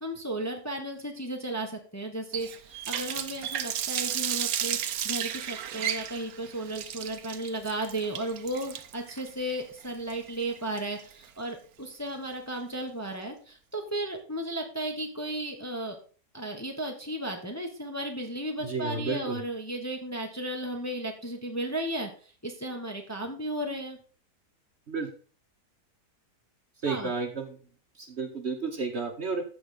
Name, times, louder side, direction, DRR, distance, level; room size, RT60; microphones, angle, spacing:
voice 1, 0.0-4.8 5.0-16.0 16.3-24.0 26.9-27.1, right 1 dB, 10° left, 2 dB, 1.1 m, -34 dB
Water tap faucet, 2.3-11.3, right 10 dB, 70° right, 1.1 m, -33 dB
voice 2, 18.6-19.4 24.9-25.1 26.8-27.6 28.0-29.4, right 4 dB, 45° right, 4 dB, 1.3 m, -31 dB
14.0 x 5.0 x 3.9 m, 0.39 s
omnidirectional pair, 1.7 m